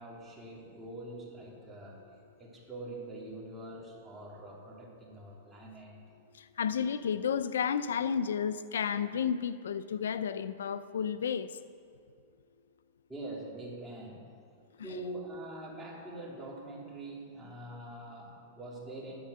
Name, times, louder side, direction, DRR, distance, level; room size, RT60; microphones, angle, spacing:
voice 1, 0.0-2.0 2.4-5.9 13.1-14.3 14.8-19.2, right 1 dB, 10° right, -4 dB, 2.9 m, -44 dB
voice 2, 6.6-11.5, left 7 dB, 90° left, 14 dB, 0.4 m, -31 dB
10.0 x 9.6 x 6.5 m, 2.3 s
hypercardioid pair, 130°, 0 cm